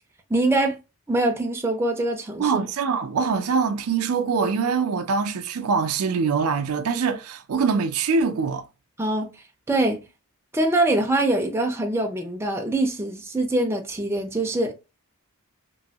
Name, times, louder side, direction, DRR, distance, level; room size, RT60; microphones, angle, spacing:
voice 1, 0.3-0.8 1.1-2.6 9.0-9.3 9.7-10.0 10.5-14.7, right 2 dB, 10° right, 0.5 m, -23 dB
voice 2, 2.4-8.6, right 5 dB, 75° right, 0.4 m, -23 dB
3.0 x 2.6 x 2.7 m
head